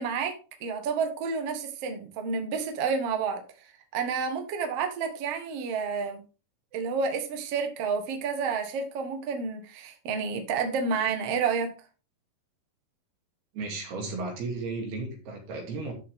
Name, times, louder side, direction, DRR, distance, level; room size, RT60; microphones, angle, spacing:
voice 1, 0.0-3.4 3.9-6.2 6.7-11.7, right 5 dB, 55° right, 1.9 m, -30 dB
voice 2, 13.5-15.9, right 3 dB, 75° right, 4.4 m, -34 dB
12.5 x 5.7 x 3.6 m
omnidirectional pair, 4.6 m